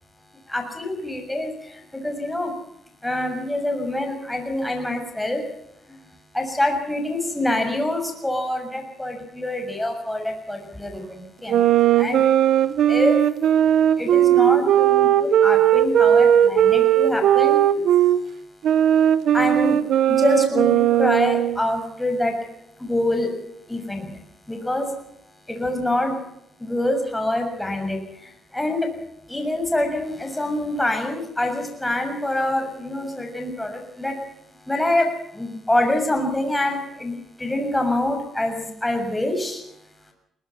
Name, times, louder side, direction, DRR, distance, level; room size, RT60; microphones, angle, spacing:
voice 1, 0.5-2.5 3.0-5.4 6.3-11.6 11.9-12.2 12.9-13.2 14.0-17.6 19.3-19.8 20.1-22.4 22.8-23.3 23.7-24.1 24.5-24.9 25.5-26.2 26.6-28.9 29.3-34.2 34.7-39.6, left 1 dB, 10° left, 4 dB, 6.7 m, -25 dB
sound 1, 11.5-18.2 18.6-21.6, right 10 dB, 75° right, 1.1 m, -17 dB
22.5 x 20.0 x 5.8 m, 0.78 s
cardioid pair, 90°, 0 cm